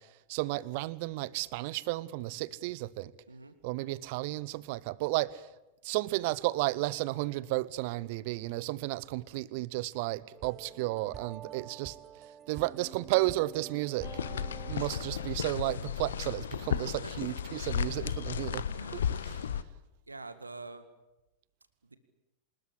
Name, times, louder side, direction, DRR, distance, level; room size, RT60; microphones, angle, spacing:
voice 1, 0.0-3.1 3.6-5.5 5.8-12.0 12.5-14.1 14.7-18.7 18.9-19.5, right 19 dB, 50° right, 1.0 m, -33 dB
sound 1, 10.3-15.4, right 10 dB, 25° right, 1.1 m, -47 dB
sound 2, 14.0-19.6, left 8 dB, 65° left, 1.2 m, -34 dB
voice 2, 16.7-17.1 18.7-19.2 20.1-20.8, right 3 dB, 80° right, 1.9 m, -46 dB
26.0 x 21.0 x 8.6 m
figure-of-eight pair, 90°, 0 cm